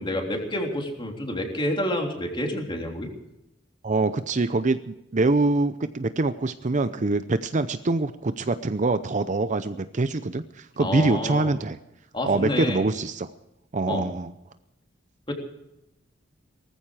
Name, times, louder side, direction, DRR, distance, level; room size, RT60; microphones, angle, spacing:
voice 1, 0.0-3.1 10.8-11.5 12.1-12.8 13.9-14.0 15.3-15.4, left 1 dB, 25° left, 2 dB, 3.4 m, -28 dB
voice 2, 3.8-11.8 12.3-13.3 13.7-14.3, right 3 dB, 40° right, 11 dB, 0.6 m, -24 dB
19.0 x 14.5 x 4.9 m, 0.88 s
head